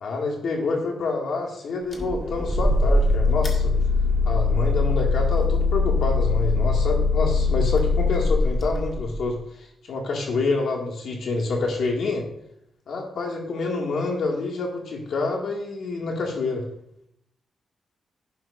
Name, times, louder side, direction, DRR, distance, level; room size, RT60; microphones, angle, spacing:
voice 1, 0.0-3.7 4.3-12.2 12.9-16.7, left 3 dB, 70° left, 0 dB, 1.9 m, -27 dB
sound 1, 1.9-9.3, left 3 dB, 25° left, 1.8 m, -22 dB
11.0 x 11.0 x 2.5 m, 0.74 s
wide cardioid pair, 140°, 0 cm